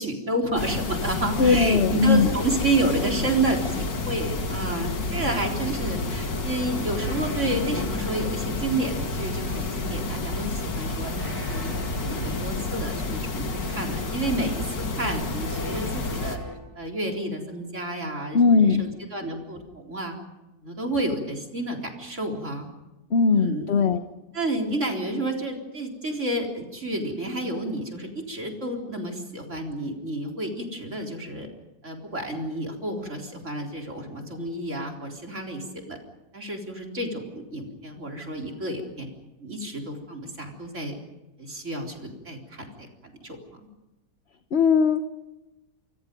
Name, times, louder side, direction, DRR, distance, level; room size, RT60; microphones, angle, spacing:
voice 1, 0.0-11.1 11.5-14.7 15.0-16.4 16.8-20.1 20.6-22.7 23.3-23.7 24.3-31.5 31.8-36.0 36.3-39.1 39.4-41.0 41.4-42.7 43.2-43.6, right 1 dB, 40° right, 1 dB, 4.2 m, -30 dB
sound 1, 0.6-16.4, left 3 dB, 80° left, 2.9 m, -30 dB
voice 2, 1.4-2.3 18.3-18.9 23.1-24.0 44.5-45.0, left 5 dB, 45° left, 8 dB, 1.1 m, -19 dB
sound 2, 5.1-16.6, left 1 dB, 10° right, 4.9 m, -41 dB
28.0 x 25.5 x 5.4 m, 1.0 s
omnidirectional pair, 1.9 m